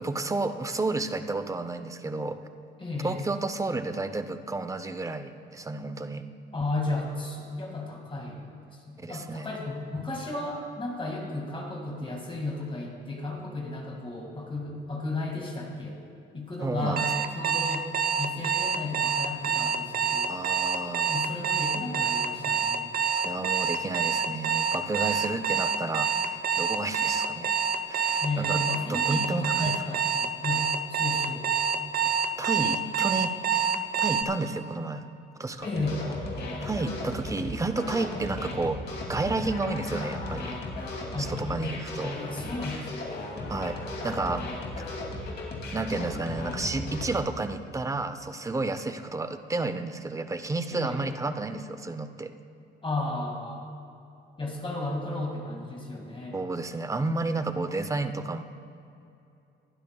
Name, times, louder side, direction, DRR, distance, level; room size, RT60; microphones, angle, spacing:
voice 1, 0.0-2.4 3.0-6.2 9.0-9.5 16.6-17.1 20.3-21.2 23.1-27.5 27.9-28.6 28.9-29.8 32.0-32.1 32.4-33.7 34.0-35.1 35.4-35.7 36.6-40.6 41.2-42.2 43.5-44.5 45.7-52.3 56.3-58.4, right 3 dB, 15° right, 9 dB, 0.6 m, -31 dB
voice 2, 2.8-3.2 6.5-16.0 16.3-17.1 17.3-17.9 18.2-20.4 21.0-22.9 28.2-31.5 35.6-36.0 41.1-43.2 50.7-51.0 52.8-53.6 54.4-56.4, left 2 dB, 25° left, 0 dB, 2.0 m, -34 dB
Alarm, 17.0-34.2, right 6 dB, 50° right, 0.8 m, -26 dB
sound 1, 35.6-47.2, left 2 dB, 55° left, 2.6 m, -36 dB
20.0 x 12.0 x 2.3 m, 2.7 s
cardioid pair, 90°, 20 cm